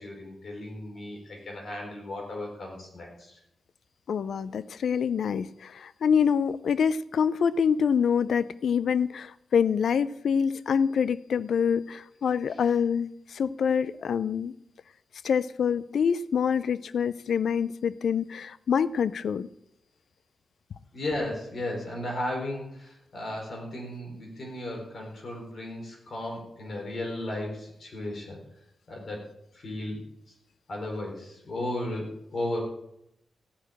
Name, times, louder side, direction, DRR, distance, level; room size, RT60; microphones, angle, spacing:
voice 1, 0.0-3.4 12.5-12.7 20.9-28.4 28.9-29.2 29.5-30.3 30.7-32.6, left 1 dB, 50° left, -1 dB, 4.1 m, -35 dB
voice 2, 4.1-14.5 15.2-19.5, left 7 dB, 70° left, 16 dB, 0.4 m, -26 dB
15.5 x 6.3 x 8.9 m, 0.81 s
wide cardioid pair, 135°, 0 cm